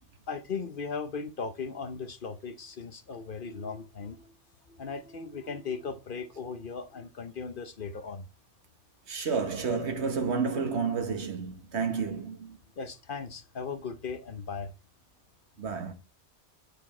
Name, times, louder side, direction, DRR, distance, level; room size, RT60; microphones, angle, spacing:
voice 1, 0.3-4.3 4.7-8.2 12.8-14.7, left 5 dB, 55° left, 0.9 m, -37 dB
voice 2, 9.1-12.6 15.6-15.9, right 5 dB, 80° right, 1.6 m, -30 dB
8.7 x 6.8 x 4.3 m
omnidirectional pair, 1.1 m